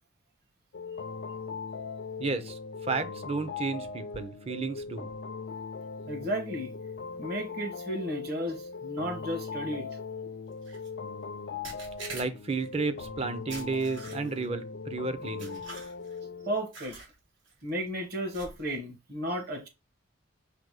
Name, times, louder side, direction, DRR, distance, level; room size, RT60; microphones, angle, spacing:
sound 1, 0.7-16.6, left 5 dB, 55° left, 0.4 m, -39 dB
voice 1, 2.2-5.1 12.1-15.6, right 4 dB, 30° right, 0.5 m, -32 dB
voice 2, 6.1-6.7 7.2-9.9 16.4-17.0 17.6-19.7, equal, 50° right, 1.3 m, -33 dB
sound 2, 10.6-10.9 11.6-12.6 13.5-14.5 15.4-16.2 16.7-17.1 17.5-17.7 18.3-18.8, right 3 dB, 65° right, 2.4 m, -45 dB
5.0 x 2.2 x 4.7 m
head